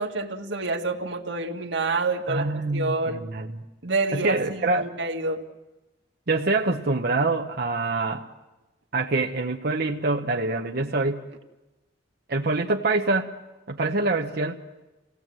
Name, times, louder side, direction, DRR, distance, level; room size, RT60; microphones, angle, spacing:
voice 1, 0.0-3.2 3.8-5.4, right 3 dB, 85° right, 3 dB, 2.0 m, -28 dB
voice 2, 2.3-3.6 4.1-4.9 6.3-8.3 8.9-11.2 12.3-13.3 13.7-14.6, right 3 dB, 60° right, 1 dB, 1.0 m, -25 dB
28.5 x 18.0 x 7.7 m, 1.1 s
head